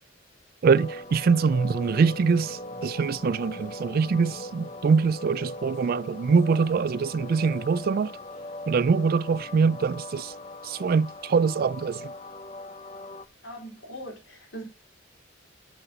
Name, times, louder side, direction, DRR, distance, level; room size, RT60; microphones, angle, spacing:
sound 1, 0.6-13.2, left 1 dB, 35° left, 0.7 m, -40 dB
voice 1, 0.6-8.1 8.7-10.3 10.6-12.1, right 5 dB, 50° right, 0.3 m, -23 dB
voice 2, 13.4-14.6, right 1 dB, 80° left, 3.7 m, -40 dB
7.4 x 6.9 x 3.9 m
head